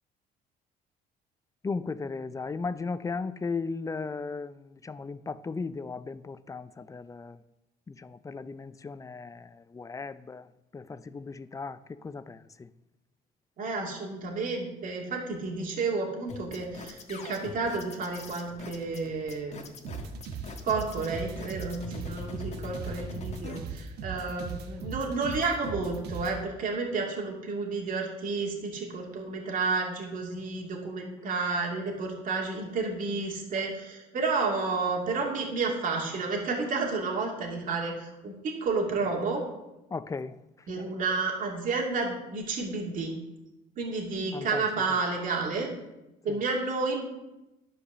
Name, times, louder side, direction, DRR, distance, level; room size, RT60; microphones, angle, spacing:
voice 1, 1.6-7.4 7.9-10.4 10.7-11.8 12.0-12.7 39.9-40.4 44.3-44.6, left 4 dB, 20° left, 0.5 m, -36 dB
voice 2, 13.6-19.6 20.6-39.4 40.7-43.1 43.8-45.7 46.2-47.1, right 4 dB, 55° right, 2.4 m, -31 dB
sound 1, 16.3-23.6, left 4 dB, 40° left, 1.4 m, -42 dB
sound 2, 19.8-26.4, right 6 dB, 75° right, 1.2 m, -38 dB
11.0 x 5.0 x 6.7 m
cardioid pair, 110°, 17 cm